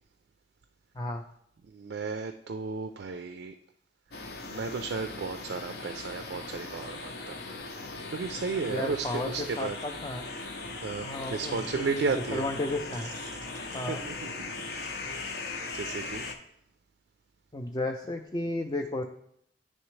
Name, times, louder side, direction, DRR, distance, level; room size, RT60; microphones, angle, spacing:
voice 1, 1.7-3.5 4.5-7.4 8.1-9.8 10.8-12.5 13.3-14.3 15.7-16.3, right 4 dB, 75° right, 7 dB, 0.4 m, -34 dB
sound 1, 4.1-16.3, left 3 dB, 65° left, 0.6 m, -39 dB
voice 2, 8.6-10.2 11.0-12.1 12.3-13.1 13.7-14.0 17.5-19.0, left 2 dB, 25° left, 2 dB, 0.4 m, -33 dB
9.8 x 3.3 x 3.2 m, 0.70 s
head